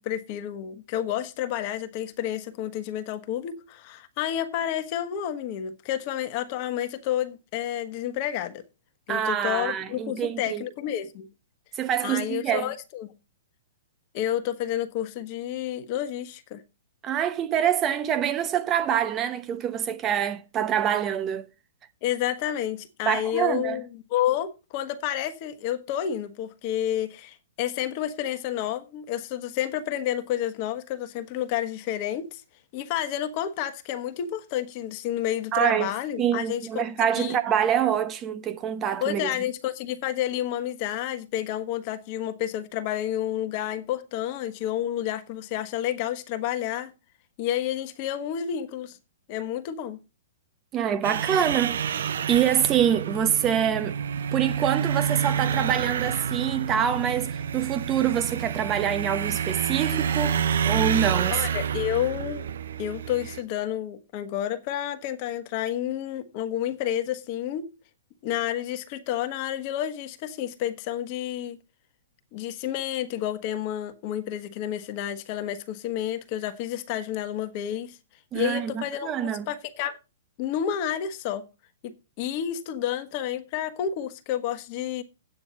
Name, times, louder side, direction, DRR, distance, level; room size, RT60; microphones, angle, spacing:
voice 1, 0.0-8.6 9.1-11.3 12.0-13.1 14.1-16.6 22.0-32.4 32.7-36.8 37.2-37.4 39.0-46.9 47.4-49.0 49.3-50.0 61.3-62.5 62.8-67.7 68.2-71.6 72.3-78.0 78.3-80.0 80.4-81.4 81.8-85.0, left 11 dB, 40° left, 1.4 m, -30 dB
voice 2, 9.1-10.6 11.8-12.7 17.0-21.5 23.1-23.8 35.5-35.9 36.2-39.3 50.7-54.0 54.3-61.5 78.3-79.5, right 9 dB, 25° right, 1.0 m, -25 dB
sound 1, 51.0-63.4, right 8 dB, 65° right, 0.7 m, -28 dB
9.6 x 9.1 x 4.2 m
hypercardioid pair, 115°, 0 cm